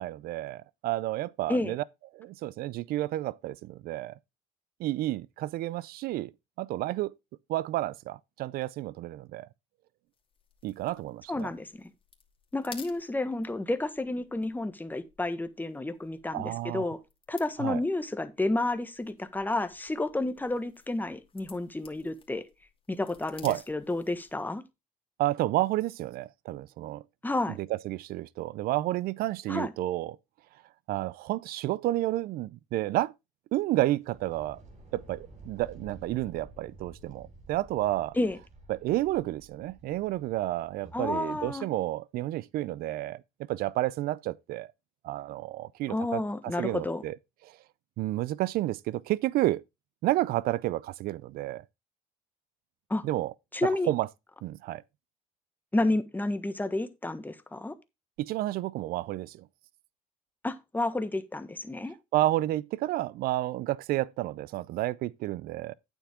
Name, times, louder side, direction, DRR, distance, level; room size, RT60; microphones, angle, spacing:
voice 1, 0.0-1.8 2.1-4.1 4.8-6.3 6.6-7.1 7.5-9.5 10.6-11.5 16.3-16.9 17.6-17.8 23.4-23.6 25.2-27.0 27.8-30.2 30.9-33.1 33.5-34.6 34.9-38.2 38.7-43.2 43.5-44.7 45.0-46.2 46.6-47.2 48.0-49.6 50.0-51.6 53.0-53.3 53.9-54.1 54.4-54.8 58.2-59.5 62.1-65.7, right 15 dB, 75° right, 0.6 m, -30 dB
sound 1, 10.1-24.5, left 5 dB, 35° left, 2.6 m, -55 dB
voice 2, 11.3-11.9 12.5-17.0 17.3-22.4 22.9-24.6 27.2-27.6 29.5-29.7 38.1-38.4 40.9-41.7 45.9-47.0 52.9-53.0 53.5-53.9 55.7-57.7 60.4-61.9, left 2 dB, 10° left, 1.4 m, -31 dB
sound 2, 34.0-41.6, right 2 dB, 50° right, 4.6 m, -52 dB
9.1 x 7.3 x 3.5 m
supercardioid pair, 80°, 16 cm